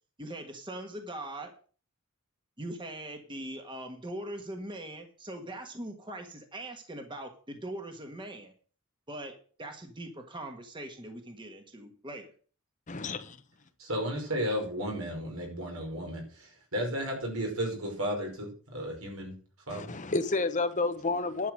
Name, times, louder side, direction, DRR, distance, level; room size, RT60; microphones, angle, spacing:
voice 1, 0.2-1.5 2.6-8.5 9.1-12.3, right 1 dB, 20° right, 1.5 m, -41 dB
voice 2, 12.9-13.4 19.7-21.5, left 3 dB, 35° left, 0.9 m, -30 dB
voice 3, 13.8-19.3 19.7-19.9, equal, 80° right, 5.3 m, -34 dB
11.0 x 7.0 x 6.3 m
head